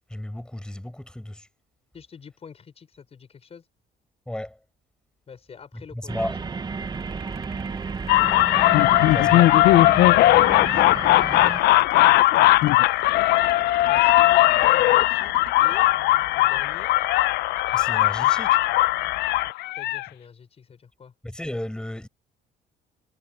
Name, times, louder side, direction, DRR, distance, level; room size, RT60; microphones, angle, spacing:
voice 1, 0.1-1.5 4.3-4.6 5.9-6.4 9.1-9.6 17.7-18.6 21.2-22.1, left 1 dB, 5° left, 6.0 m, -33 dB
voice 2, 1.9-3.7 5.3-6.2 8.1-8.5 10.6-11.5 13.9-15.9 16.4-16.9 19.7-21.1, left 6 dB, 35° left, 5.7 m, -46 dB
sound 1, 6.1-11.6, right 5 dB, 25° right, 1.0 m, -32 dB
sound 2, 6.8-9.9 11.4-16.9, right 13 dB, 70° right, 2.0 m, -44 dB
sound 3, 8.1-20.1, left 16 dB, 80° left, 0.6 m, -18 dB
cardioid pair, 110°, 17 cm